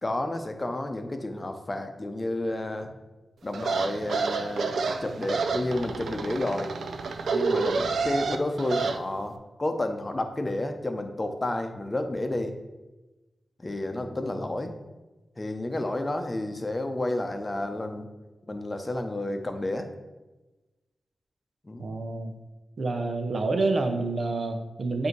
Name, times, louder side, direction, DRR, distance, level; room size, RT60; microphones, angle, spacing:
voice 1, 0.0-2.9 3.4-4.7 5.0-6.7 7.3-9.3 9.6-12.5 13.6-14.7 15.4-18.1 18.5-19.9 21.6-21.9, left 1 dB, 30° left, 6 dB, 0.7 m, -31 dB
sound 1, 3.5-9.0, right 4 dB, 80° right, 0.4 m, -29 dB
voice 2, 21.8-22.3 22.8-25.1, right 3 dB, 65° right, 5 dB, 0.8 m, -28 dB
7.9 x 2.8 x 4.6 m, 1.1 s
cardioid pair, 60°, 0 cm